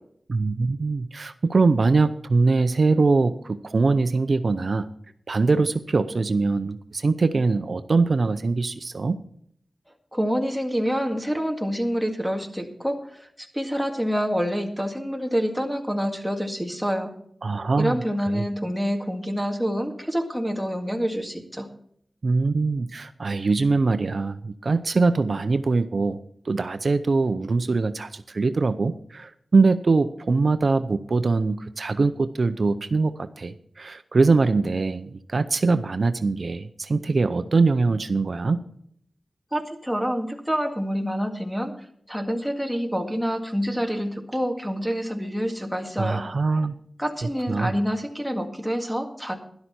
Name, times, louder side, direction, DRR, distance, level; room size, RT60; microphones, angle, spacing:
voice 1, 0.3-4.9 5.3-9.2 17.4-18.0 18.3-18.5 22.2-26.2 26.5-38.6 46.0-46.8 47.5-47.7, right 3 dB, 65° right, 11 dB, 0.6 m, -22 dB
voice 2, 10.1-17.1 17.8-21.7 39.5-41.7 42.1-46.3 47.0-49.4, equal, ahead, 5 dB, 1.9 m, -27 dB
12.5 x 11.5 x 4.3 m, 0.65 s
wide cardioid pair, 75°, 0 cm